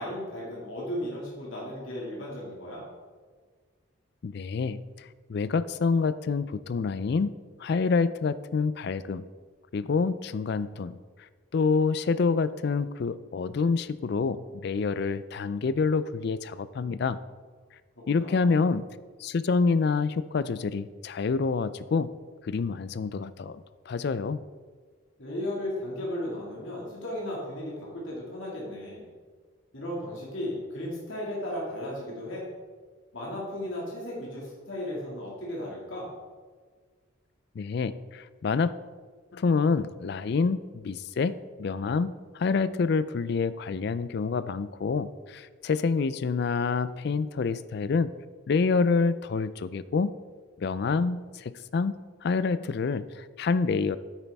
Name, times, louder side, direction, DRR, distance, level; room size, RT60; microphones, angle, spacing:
voice 1, 0.0-2.9 18.0-18.5 25.2-29.1 29.7-32.4 33.1-36.1, left 1 dB, 70° left, -5 dB, 2.2 m, -35 dB
voice 2, 4.2-7.3 7.6-9.3 9.7-11.0 11.5-17.2 18.1-18.9 19.2-22.1 22.4-24.4 37.6-38.7 39.3-48.1 48.5-50.1 50.6-54.0, left 4 dB, 50° left, 15 dB, 0.3 m, -27 dB
9.5 x 8.8 x 3.5 m, 1.5 s
head